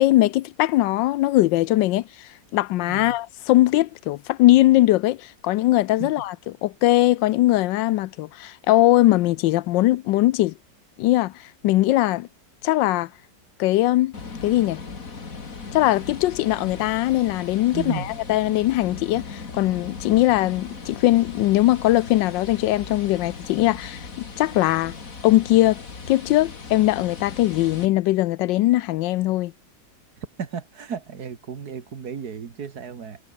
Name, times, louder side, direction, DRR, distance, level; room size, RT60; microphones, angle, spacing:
voice 1, 0.0-10.5 11.0-11.3 11.6-12.3 12.6-13.1 13.6-14.1 14.4-14.8 15.7-24.1 24.4-24.9 25.2-29.5, left 16 dB, 85° left, 1.3 m, -20 dB
sound 1, 14.1-27.9, left 4 dB, 50° left, 2.9 m, -38 dB
voice 2, 17.7-18.1 30.4-33.2, right 6 dB, 60° right, 2.2 m, -34 dB
omnidirectional pair, 1.9 m